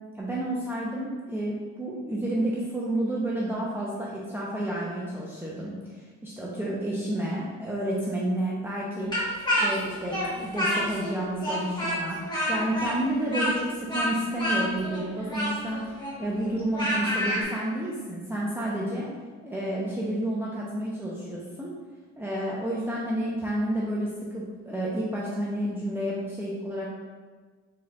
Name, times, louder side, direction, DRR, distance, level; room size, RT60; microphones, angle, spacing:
voice 1, 0.1-9.1 9.6-12.2 12.5-19.1 19.4-21.7 22.2-26.9, right 1 dB, 5° right, -6 dB, 0.6 m, -30 dB
Speech, 9.1-11.1 11.4-17.4, equal, 15° left, 1.4 m, -28 dB
4.1 x 4.0 x 2.4 m, 1.4 s
cardioid pair, 90°, 30 cm